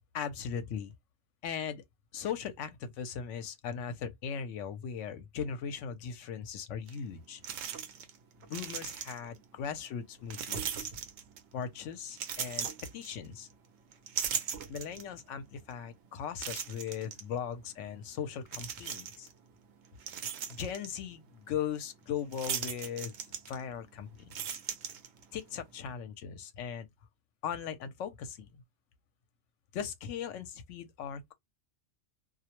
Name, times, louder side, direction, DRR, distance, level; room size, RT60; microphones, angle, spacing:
voice 1, 0.1-0.9 1.4-1.8 2.1-7.4 8.5-10.9 11.5-12.7 12.9-13.5 14.7-19.3 20.5-23.1 23.5-24.6 25.3-26.9 27.4-28.6 29.7-31.3, left 7 dB, 70° left, 0.9 m, -38 dB
sound 1, 6.9-7.0 7.4-8.2 8.4-9.4 10.3-11.5 12.1-13.5 13.9-15.2 15.7-15.8 16.4-17.2 18.5-19.3 19.8-20.9 22.3-23.9 24.2-25.4, right 8 dB, 65° right, 0.8 m, -38 dB
2.4 x 2.0 x 2.9 m
omnidirectional pair, 1.3 m